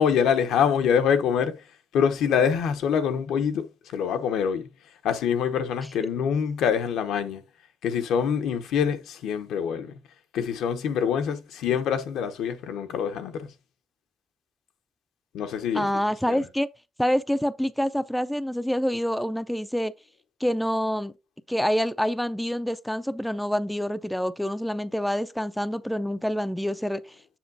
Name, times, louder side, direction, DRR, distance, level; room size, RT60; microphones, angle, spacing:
voice 1, 0.0-1.5 1.9-3.7 3.9-4.6 5.0-7.4 7.8-9.9 10.3-13.5 15.3-15.9 16.3-16.4, left 7 dB, 85° left, 0.9 m, -25 dB
voice 2, 15.7-16.7 17.0-19.9 20.4-21.1 21.5-27.0, equal, 5° left, 0.4 m, -26 dB
7.2 x 6.9 x 2.7 m
cardioid pair, 90°, 0 cm